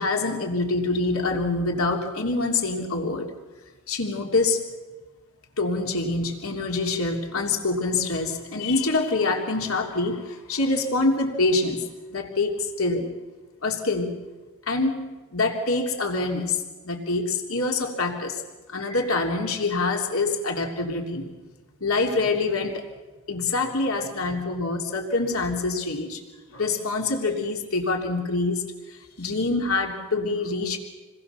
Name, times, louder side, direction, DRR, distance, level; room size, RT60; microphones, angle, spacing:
voice 1, 0.0-3.3 3.9-4.7 5.6-11.9 12.1-13.1 13.6-14.2 14.7-18.4 18.7-21.2 21.8-22.9 23.3-26.2 26.5-28.6 28.9-30.8, left 3 dB, 70° left, 2 dB, 3.2 m, -25 dB
28.5 x 21.5 x 7.0 m, 1.2 s
head